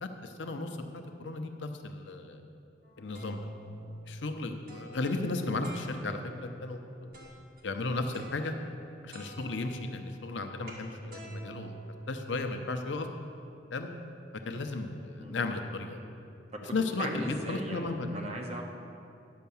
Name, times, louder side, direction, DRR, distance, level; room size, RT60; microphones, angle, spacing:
voice 1, 0.0-2.4 3.0-3.5 4.1-6.8 7.1-7.3 7.6-8.5 9.0-11.7 12.1-13.1 13.7-13.9 14.5-16.0 16.6-18.1, left 3 dB, 80° left, 5 dB, 0.7 m, -35 dB
sound 1, 2.8-6.4 7.1-7.6 8.1-8.8 9.1-12.6, right 1 dB, 55° right, 1.9 m, -47 dB
voice 2, 17.0-18.6, right 1 dB, 35° right, 0 dB, 1.1 m, -38 dB
10.5 x 5.7 x 7.0 m, 2.5 s
head